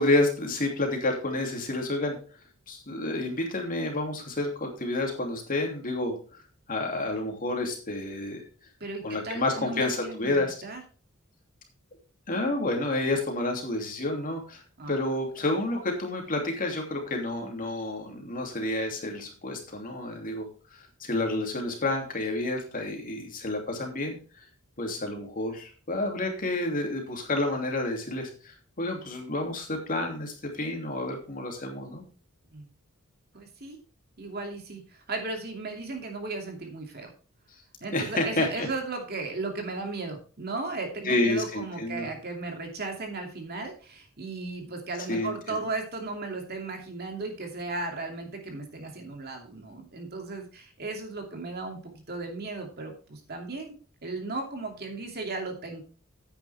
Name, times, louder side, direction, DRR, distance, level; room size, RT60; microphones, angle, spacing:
voice 1, 0.0-2.2 2.7-6.1 6.7-8.4 9.0-10.5 12.3-14.6 14.9-20.5 21.0-24.2 24.8-32.0 37.9-38.7 41.0-42.1 45.1-45.6, left 2 dB, 40° left, 2 dB, 2.7 m, -29 dB
voice 2, 8.8-10.8 14.8-15.0 32.5-32.7 33.3-33.8 34.2-37.1 37.8-55.8, right 3 dB, 50° right, 3 dB, 2.6 m, -36 dB
10.0 x 9.0 x 3.5 m, 0.38 s
head